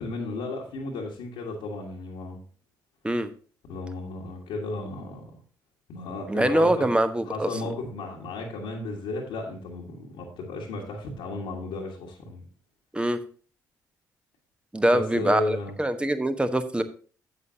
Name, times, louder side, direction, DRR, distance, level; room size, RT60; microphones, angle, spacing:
voice 1, 0.0-2.4 3.7-5.4 5.9-6.9 7.3-12.4 14.9-15.7, left 2 dB, 65° left, -3 dB, 1.6 m, -34 dB
voice 2, 6.3-7.5 12.9-13.2 14.7-16.8, right 1 dB, 10° right, 9 dB, 1.1 m, -24 dB
11.0 x 8.1 x 2.8 m, 0.41 s
figure-of-eight pair, 40°, 10 cm